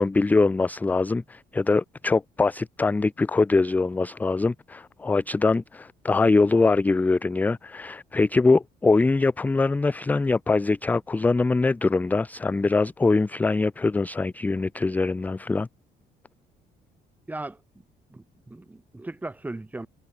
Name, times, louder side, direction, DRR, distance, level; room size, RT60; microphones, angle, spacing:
voice 1, 0.0-15.7, left 3 dB, 10° left, 0.3 m, -23 dB
voice 2, 17.3-17.6 18.1-19.9, right 2 dB, 10° right, 0.7 m, -37 dB
cardioid pair, 110°, 17 cm